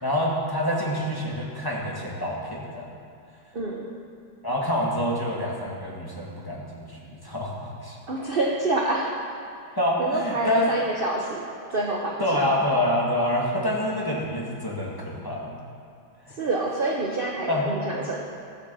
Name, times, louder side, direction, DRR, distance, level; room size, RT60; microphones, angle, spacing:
voice 1, 0.0-2.9 4.4-8.0 9.8-10.8 12.2-15.6 16.2-16.4 17.5-17.7, left 1 dB, 10° left, -4 dB, 1.6 m, -27 dB
voice 2, 3.5-3.9 8.1-9.1 9.7-12.2 16.4-18.2, right 2 dB, 50° right, -1 dB, 0.6 m, -27 dB
15.5 x 7.2 x 6.9 m, 2.3 s
omnidirectional pair, 2.3 m